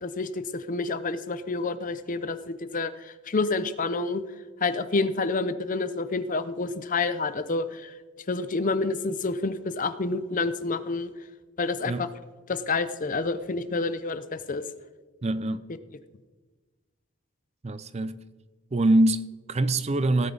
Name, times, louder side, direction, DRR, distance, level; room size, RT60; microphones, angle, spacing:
voice 1, 0.0-4.2 4.6-7.9 8.3-11.1 11.6-12.1 12.5-14.6, left 3 dB, 40° left, 0.6 m, -28 dB
voice 2, 15.2-15.6 17.6-18.2 18.7-20.3, right 1 dB, 30° right, 0.5 m, -24 dB
17.0 x 9.2 x 3.9 m
head